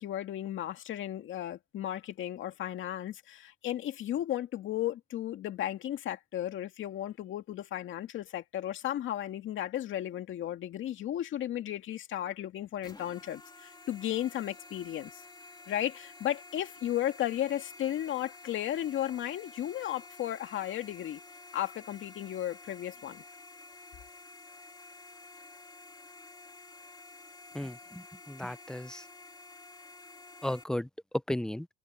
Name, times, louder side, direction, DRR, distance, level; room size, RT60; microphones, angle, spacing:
voice 1, 0.0-15.2 15.7-21.2 21.5-23.2, left 12 dB, 75° left, 2.3 m, -34 dB
sound 1, 12.8-30.6, left 3 dB, 20° left, 2.5 m, -51 dB
voice 2, 27.5-29.0 30.4-30.9 31.3-31.7, left 1 dB, 5° left, 0.5 m, -35 dB
cardioid pair, 90°, 20 cm